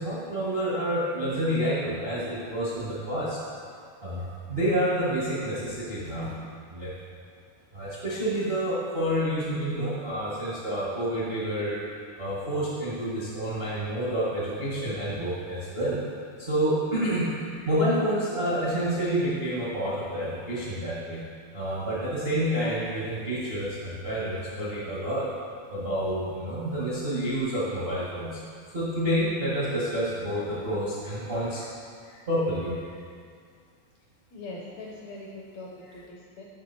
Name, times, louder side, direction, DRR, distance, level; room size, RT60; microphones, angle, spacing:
voice 1, 0.0-3.4 4.0-6.3 6.7-6.9 7.7-11.8 12.2-16.0 16.4-21.2 21.5-25.2 25.7-28.4 28.7-31.7 32.1-32.7, equal, 70° right, -9 dB, 0.5 m, -28 dB
voice 2, 34.3-36.4, left 2 dB, 75° left, -2 dB, 1.6 m, -41 dB
7.8 x 6.1 x 4.2 m, 2.2 s
omnidirectional pair, 3.9 m